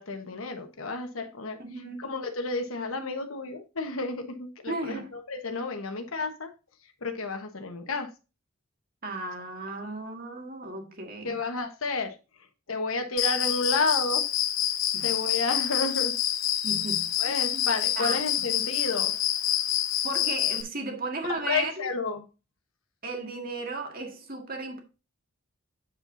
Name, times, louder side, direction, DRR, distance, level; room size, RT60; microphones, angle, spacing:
voice 1, 0.0-1.6 2.0-5.0 5.3-6.5 7.0-8.1 11.2-12.2 12.7-14.3 15.0-16.1 17.2-19.1 21.3-22.2, left 3 dB, 85° left, 1.2 m, -31 dB
voice 2, 1.6-2.0 4.7-5.2 9.0-11.4 14.9-15.2 16.6-17.7 18.0-18.2 20.0-21.9 23.0-24.8, right 3 dB, 45° right, 1.9 m, -35 dB
Cricket, 13.2-20.6, left 12 dB, 70° left, 0.7 m, -27 dB
7.5 x 7.5 x 2.6 m
head